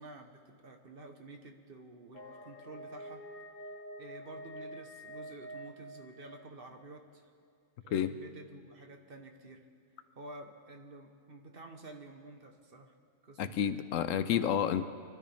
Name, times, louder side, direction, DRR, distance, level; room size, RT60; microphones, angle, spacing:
voice 1, 0.0-3.2 4.0-7.3 7.8-9.7 10.1-12.9 13.2-13.7, right 2 dB, 45° right, 3 dB, 1.2 m, -50 dB
sound 1, 2.1-6.8, equal, 40° left, 0.9 m, -47 dB
voice 2, 13.4-14.8, left 9 dB, 80° left, 12 dB, 1.0 m, -30 dB
23.0 x 12.5 x 3.4 m, 2.5 s
omnidirectional pair, 1.4 m